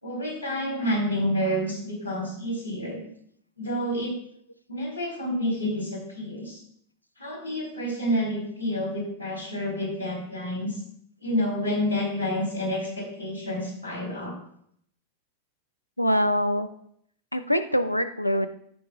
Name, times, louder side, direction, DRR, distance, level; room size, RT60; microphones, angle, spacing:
voice 1, 0.0-3.0 3.6-4.2 4.7-6.6 7.2-10.8 11.2-14.3, equal, 90° right, -3 dB, 2.9 m, -29 dB
voice 2, 16.0-16.7 17.3-18.5, equal, 85° left, 11 dB, 0.5 m, -24 dB
15.5 x 5.1 x 2.3 m, 0.68 s
figure-of-eight pair, 90°, 0 cm